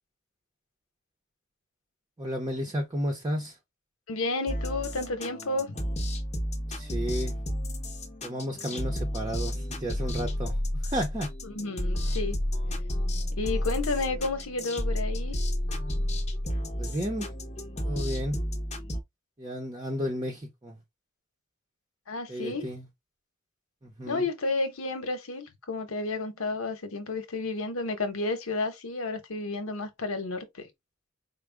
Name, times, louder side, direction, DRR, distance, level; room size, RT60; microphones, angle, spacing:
voice 1, 2.2-3.6 6.7-7.4 8.2-11.3 16.8-17.3 17.8-18.4 19.4-20.8 22.3-22.9 23.8-24.2, equal, 20° right, 0.8 m, -33 dB
voice 2, 4.1-5.8 11.4-12.4 13.4-15.4 22.1-22.7 24.1-30.7, left 3 dB, 80° left, 1.1 m, -31 dB
sound 1, 4.5-19.0, left 1 dB, 35° left, 0.8 m, -31 dB
4.7 x 2.2 x 3.4 m
head